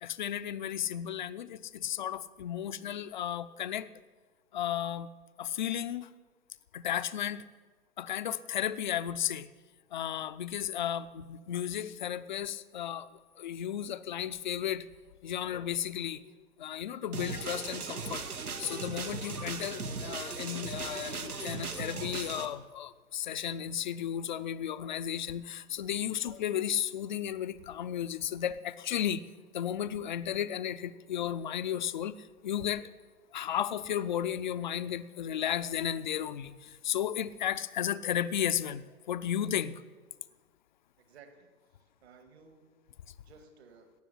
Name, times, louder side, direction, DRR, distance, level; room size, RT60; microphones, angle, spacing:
voice 1, 0.0-3.9 4.5-5.1 5.4-6.1 6.7-7.4 8.0-9.5 9.9-13.1 13.4-14.8 15.2-16.2 16.6-18.2 18.6-29.2 29.5-32.9 33.3-39.8, left 10 dB, 35° left, 12 dB, 0.5 m, -34 dB
sound 1, 17.1-22.5, right 4 dB, 85° right, 1.5 m, -38 dB
voice 2, 41.0-41.5 42.0-42.7 43.2-43.9, right 5 dB, 45° right, 8 dB, 1.9 m, -56 dB
17.5 x 6.9 x 10.0 m, 1.3 s
figure-of-eight pair, 130°, 44 cm